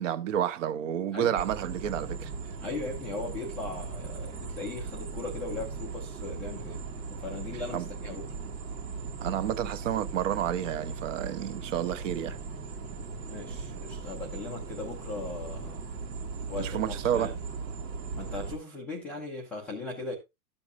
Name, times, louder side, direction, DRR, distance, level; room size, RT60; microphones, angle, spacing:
voice 1, 0.0-2.3 7.7-7.9 9.2-12.4 16.6-17.3, right 10 dB, 50° right, 1.0 m, -30 dB
sound 1, 1.4-18.6, right 4 dB, 85° right, 2.1 m, -38 dB
voice 2, 2.6-6.8 7.1-8.2 13.2-15.8 16.5-17.4 18.1-20.1, left 3 dB, 5° left, 0.4 m, -38 dB
13.0 x 6.9 x 2.5 m
hypercardioid pair, 150°, 49 cm